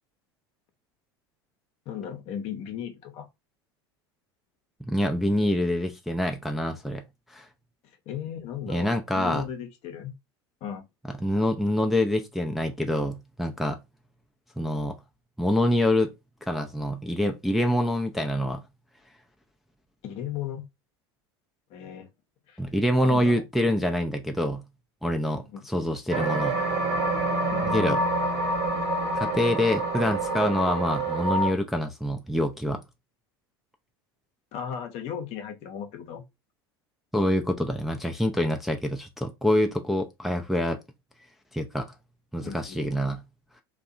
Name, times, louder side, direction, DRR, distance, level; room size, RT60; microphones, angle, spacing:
voice 1, 1.9-3.3 8.1-8.9 9.2-10.1 10.6-10.9 20.0-20.7 21.7-22.1 22.5-22.6 23.0-23.4 25.5-25.7 27.5-27.7 34.5-36.2 42.4-42.8, left 9 dB, 50° left, 0.7 m, -36 dB
voice 2, 4.8-7.0 7.3-7.5 8.7-9.5 11.2-13.8 14.6-14.9 15.4-16.1 16.5-18.6 22.6-24.6 25.0-26.6 27.7-28.0 29.1-32.8 37.1-40.8 41.5-41.9 42.3-43.2, left 1 dB, ahead, 0.3 m, -26 dB
sound 1, 26.1-31.5, right 2 dB, 55° right, 1.0 m, -27 dB
2.6 x 2.2 x 2.4 m
hypercardioid pair, 85°, 13 cm